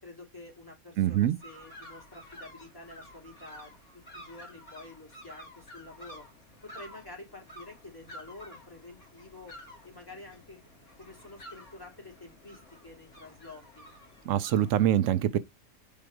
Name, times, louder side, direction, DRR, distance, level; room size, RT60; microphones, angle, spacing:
voice 1, 0.0-6.2 6.6-9.6 9.8-10.6 11.0-13.9, left 2 dB, 15° left, 3.3 m, -49 dB
voice 2, 1.0-1.4 14.3-15.4, right 11 dB, 85° right, 1.0 m, -24 dB
sound 1, 1.4-14.8, equal, 65° left, 3.1 m, -51 dB
5.7 x 5.2 x 4.7 m
omnidirectional pair, 1.3 m